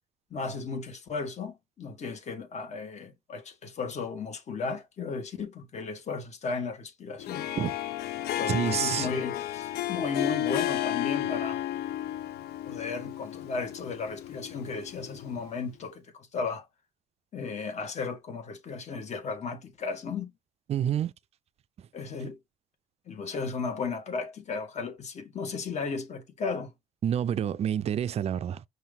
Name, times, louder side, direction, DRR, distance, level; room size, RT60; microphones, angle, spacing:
voice 1, 0.3-7.5 8.4-11.6 12.6-16.6 17.3-20.3 21.9-22.4 23.1-26.7, left 4 dB, 40° left, 1.5 m, -35 dB
Harp, 7.2-15.5, left 13 dB, 70° left, 0.6 m, -33 dB
voice 2, 8.5-9.1 20.7-21.1 27.0-28.6, right 9 dB, 40° right, 0.4 m, -28 dB
5.5 x 2.7 x 3.6 m
cardioid pair, 110°, 17 cm